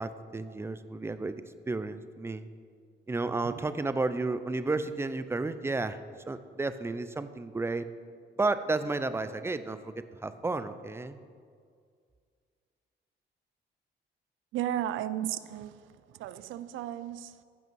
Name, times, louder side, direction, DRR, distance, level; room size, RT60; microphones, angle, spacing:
voice 1, 0.0-1.4 1.7-2.5 3.1-6.0 6.3-7.9 8.4-11.2, right 3 dB, 10° right, 0.5 m, -32 dB
voice 2, 14.5-17.4, right 11 dB, 85° right, 0.4 m, -35 dB
15.0 x 5.5 x 4.6 m
cardioid pair, 90°, 20 cm